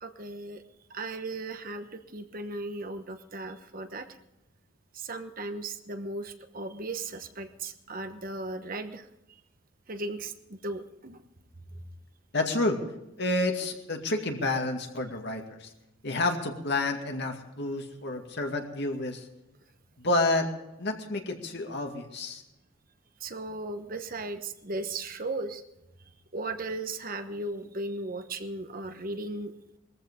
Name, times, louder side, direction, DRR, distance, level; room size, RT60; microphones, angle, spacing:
voice 1, 0.0-0.6 0.9-4.2 4.9-9.4 9.9-11.2 11.7-11.8 23.2-25.6 26.3-29.8, right 2 dB, 45° right, 8 dB, 1.1 m, -37 dB
voice 2, 12.3-12.8 13.2-15.7 16.0-19.3 20.0-20.5 20.8-22.4, left 2 dB, 55° left, 3 dB, 2.2 m, -29 dB
20.5 x 14.5 x 3.7 m, 0.92 s
head